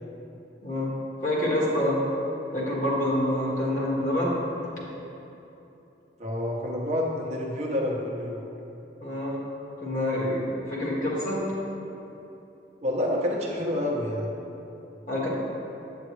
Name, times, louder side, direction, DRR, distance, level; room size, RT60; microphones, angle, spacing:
voice 1, 0.6-0.9 1.2-2.0 2.5-4.4 9.0-9.4 9.8-10.4 10.7-11.4 15.1-15.3, left 1 dB, 45° left, -5 dB, 1.7 m, -26 dB
voice 2, 6.2-8.4 12.8-14.3, left 1 dB, 40° right, -2 dB, 0.8 m, -28 dB
8.3 x 7.7 x 3.2 m, 2.9 s
head